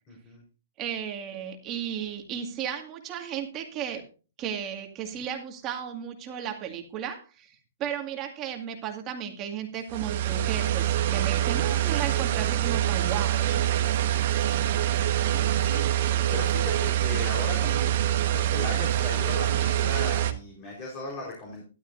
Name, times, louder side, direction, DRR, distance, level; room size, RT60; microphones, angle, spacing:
voice 1, 0.1-0.4 15.0-21.6, left 2 dB, 30° left, -2 dB, 4.2 m, -38 dB
voice 2, 0.8-4.0 4.4-13.7, right 8 dB, 25° right, 3 dB, 2.1 m, -34 dB
sound 1, 9.9-20.3, right 12 dB, 50° right, 1.4 m, -25 dB
13.0 x 12.0 x 2.6 m, 0.35 s
hypercardioid pair, 150°, 0 cm